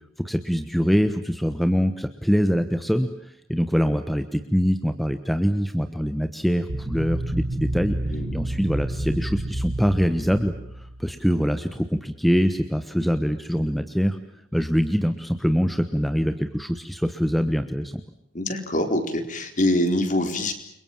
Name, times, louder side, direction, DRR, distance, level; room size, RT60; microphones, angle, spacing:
voice 1, 0.2-14.2 14.5-18.0, equal, ahead, 8 dB, 1.2 m, -24 dB
sound 1, 6.7-11.4, right 1 dB, 50° right, 1.5 m, -30 dB
voice 2, 18.3-20.5, left 1 dB, 40° left, 6 dB, 4.2 m, -24 dB
30.0 x 23.5 x 7.3 m, 0.75 s
head